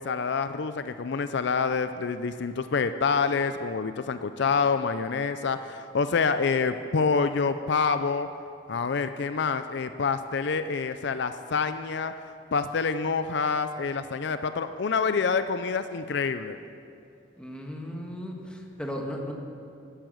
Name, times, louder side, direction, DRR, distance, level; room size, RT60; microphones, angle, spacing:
voice 1, 0.0-8.3 8.7-12.1 12.5-16.6, left 5 dB, 65° left, 10 dB, 0.5 m, -27 dB
voice 2, 17.4-19.3, equal, 5° left, 0 dB, 1.6 m, -36 dB
12.0 x 11.5 x 7.7 m, 2.6 s
head